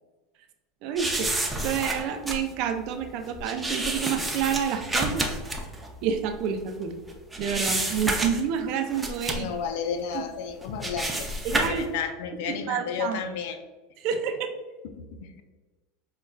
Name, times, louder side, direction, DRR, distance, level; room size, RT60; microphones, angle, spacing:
voice 1, 0.8-1.3 1.6-5.4 6.0-6.9 7.4-9.5 11.4-11.8 12.5-13.2 14.0-14.5, right 7 dB, 60° right, 6 dB, 0.4 m, -28 dB
sound 1, 1.0-6.8 7.1-8.6 8.9-9.5 10.1-10.2 10.6-11.8, right 1 dB, 10° right, 0.6 m, -30 dB
voice 2, 9.3-11.3 11.7-13.6 14.1-14.2 14.9-15.4, left 7 dB, 70° left, 7 dB, 0.4 m, -32 dB
5.4 x 2.2 x 2.3 m, 1.2 s
hypercardioid pair, 95°, 0 cm